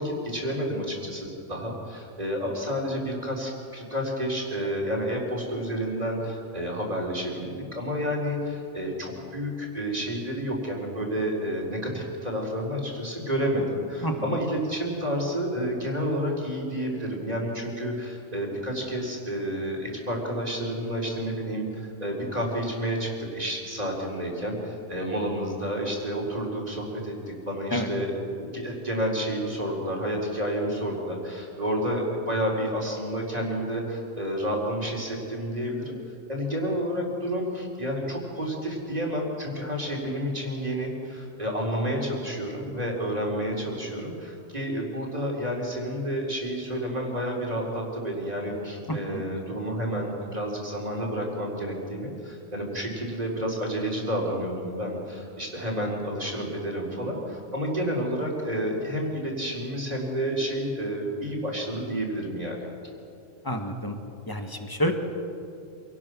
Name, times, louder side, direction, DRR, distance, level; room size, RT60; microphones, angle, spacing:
voice 1, 0.0-35.9 36.3-62.7, equal, 30° right, -2 dB, 4.0 m, -30 dB
voice 2, 14.0-14.3 27.7-27.9 49.1-49.2 63.4-64.0 64.3-64.9, equal, 15° left, 4 dB, 1.7 m, -28 dB
26.5 x 18.5 x 6.2 m, 2.5 s
omnidirectional pair, 1.3 m